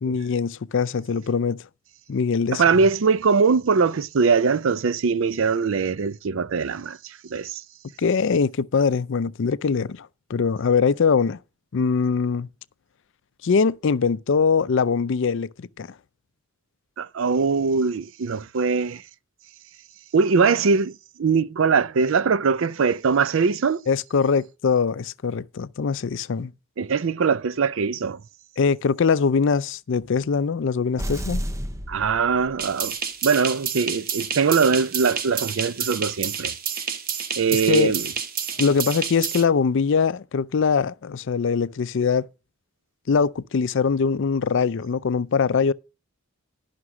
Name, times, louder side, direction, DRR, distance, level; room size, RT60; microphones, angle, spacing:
voice 1, 0.0-1.6 2.1-2.6 8.0-11.4 11.7-12.5 13.4-15.9 23.9-26.5 28.6-31.4 37.5-37.9 38.6-42.3 43.1-45.7, left 5 dB, 55° left, 0.4 m, -22 dB
voice 2, 2.5-7.6 17.0-19.0 20.1-23.8 26.8-28.2 31.9-32.9 33.2-36.5 37.4-38.1, right 5 dB, 60° right, 0.5 m, -22 dB
sound 1, 31.0-32.9, equal, 15° right, 0.6 m, -31 dB
sound 2, 32.6-39.4, right 7 dB, 40° right, 0.9 m, -30 dB
11.5 x 5.9 x 6.1 m
head